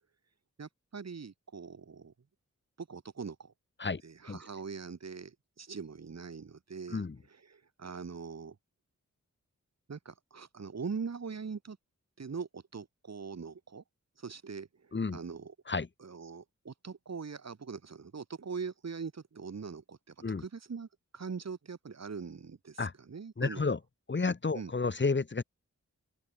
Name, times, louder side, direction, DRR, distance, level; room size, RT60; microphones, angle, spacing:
voice 1, 0.6-2.1 2.8-3.5 4.0-7.0 7.5-8.6 9.9-11.8 12.2-13.8 14.2-15.5 16.0-20.9 21.1-23.6 24.5-24.7, right 5 dB, 60° right, 3.8 m, -42 dB
voice 2, 23.4-23.8 24.1-25.4, left 4 dB, 35° left, 1.9 m, -31 dB
open air
wide cardioid pair, 100°, 30 cm